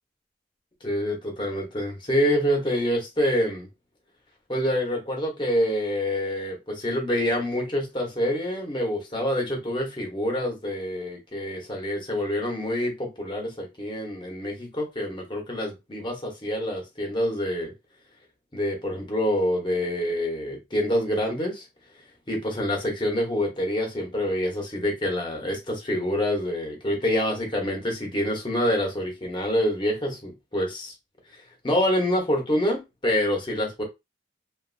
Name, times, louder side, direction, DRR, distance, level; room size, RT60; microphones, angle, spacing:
voice 1, 0.8-3.7 4.5-17.7 18.5-21.7 22.3-30.9 31.3-33.8, equal, 25° left, 1.0 m, -26 dB
2.9 x 2.5 x 2.6 m
head